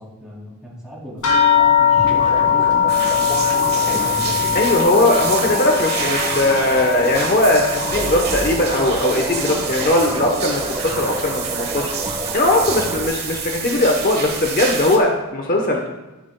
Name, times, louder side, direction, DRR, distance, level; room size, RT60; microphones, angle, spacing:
voice 1, 0.0-4.1, equal, 5° right, -6 dB, 2.5 m, -37 dB
sound 1, 1.2-10.1 10.4-11.3 12.0-12.1 12.5-12.7, left 8 dB, 80° left, 2.4 m, -21 dB
sound 2, 2.0-13.1, right 2 dB, 20° right, 1.1 m, -29 dB
sound 3, 2.9-15.0, right 6 dB, 45° right, 1.3 m, -28 dB
voice 2, 4.5-11.9 12.3-15.9, left 1 dB, 40° left, 2 dB, 0.9 m, -19 dB
12.5 x 10.5 x 2.2 m, 1.1 s
head